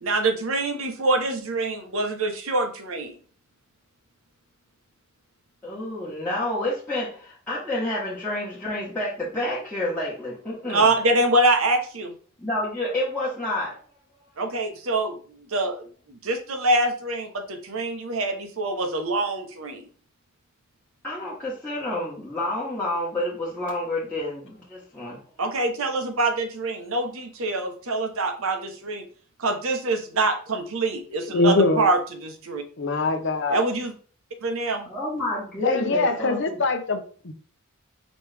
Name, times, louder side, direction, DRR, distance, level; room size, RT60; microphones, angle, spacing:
voice 1, 0.0-3.1 10.7-12.1 14.4-19.8 25.4-29.1 29.4-32.6 33.5-33.9 34.4-34.9, right 2 dB, 70° right, 5 dB, 0.9 m, -25 dB
voice 2, 5.6-10.9 12.4-13.8 21.0-25.2 34.9-36.6, left 1 dB, 10° left, -9 dB, 1.2 m, -29 dB
voice 3, 31.3-31.9 32.8-33.7 35.6-37.3, left 3 dB, 55° left, 7 dB, 0.7 m, -23 dB
5.1 x 3.1 x 3.3 m, 0.42 s
head